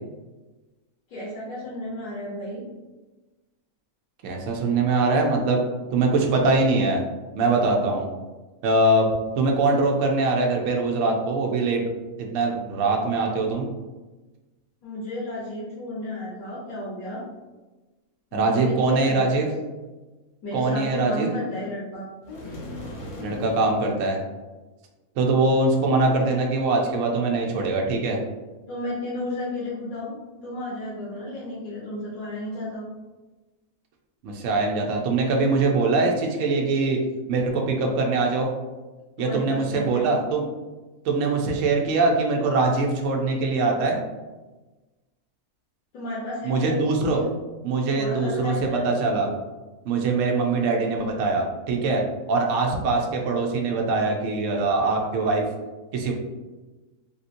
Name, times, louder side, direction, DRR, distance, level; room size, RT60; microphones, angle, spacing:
voice 1, 1.1-2.6 14.8-17.2 18.3-19.5 20.4-22.1 28.7-30.2 30.4-32.9 39.2-40.2 45.9-47.3 47.9-48.9, left 1 dB, 80° left, -8 dB, 1.3 m, -33 dB
voice 2, 4.2-5.6 5.9-7.0 7.3-8.1 8.6-9.1 9.4-11.8 12.2-13.7 18.3-19.5 20.5-21.3 23.2-24.2 25.2-28.2 34.2-37.0 37.3-38.5 39.2-40.4 41.0-44.0 46.4-47.2 47.6-49.3 49.9-52.0 52.3-55.4 55.9-56.1, right 3 dB, 70° right, 1 dB, 0.9 m, -22 dB
sound 1, 22.2-23.8, left 2 dB, 45° left, 0.4 m, -37 dB
3.5 x 2.7 x 2.5 m, 1.2 s
omnidirectional pair, 1.5 m